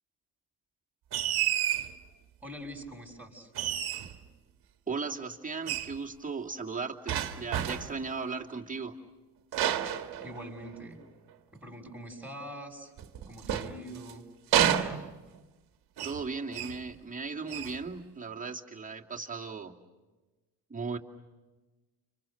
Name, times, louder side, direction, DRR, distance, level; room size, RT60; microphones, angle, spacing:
sound 1, 1.1-1.9 3.5-4.2 5.7-6.0 7.1-8.0 9.5-10.8 13.0-14.1 14.5-15.4 16.0-16.3 16.5-16.8 17.5-17.8, right 10 dB, 65° right, 1.5 m, -30 dB
voice 1, 2.4-3.5 10.2-11.0 11.5-12.9 13.3-14.3, equal, 5° right, 3 dB, 6.4 m, -44 dB
voice 2, 4.9-9.0 16.0-19.8 20.7-21.0, right 4 dB, 20° right, -1 dB, 2.5 m, -37 dB
30.0 x 26.0 x 6.7 m, 1.2 s
supercardioid pair, 70°, 40 cm